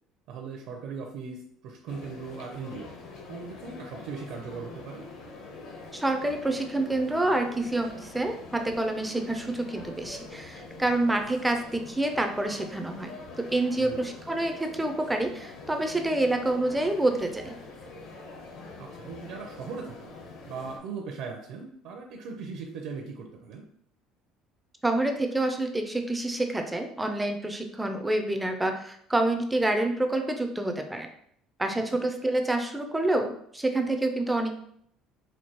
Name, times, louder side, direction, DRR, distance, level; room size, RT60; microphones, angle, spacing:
voice 1, 0.3-2.9 3.3-5.1 13.8-14.1 18.8-20.2 20.5-23.6 31.9-32.0, right 5 dB, 60° right, 2 dB, 0.5 m, -39 dB
sound 1, 1.9-20.8, left 3 dB, 60° left, 0.9 m, -45 dB
voice 2, 5.9-17.5 24.8-31.1 31.6-34.5, right 2 dB, 5° right, 5 dB, 0.3 m, -27 dB
4.4 x 2.6 x 2.9 m, 0.67 s
cardioid pair, 170°, 0 cm